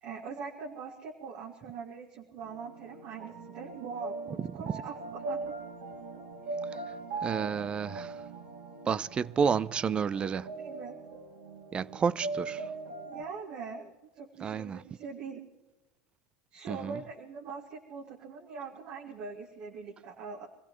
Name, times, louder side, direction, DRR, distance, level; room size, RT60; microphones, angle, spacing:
voice 1, 0.0-5.5 10.6-11.0 13.0-15.4 16.5-20.5, right 5 dB, 60° right, 1.9 m, -42 dB
sound 1, 2.4-13.2, right 3 dB, 75° right, 2.5 m, -40 dB
voice 2, 7.2-8.1 8.9-10.5 11.7-12.6 14.4-14.8 16.7-17.0, right 6 dB, 25° right, 0.5 m, -30 dB
25.5 x 16.0 x 3.1 m
supercardioid pair, 110°, 4 cm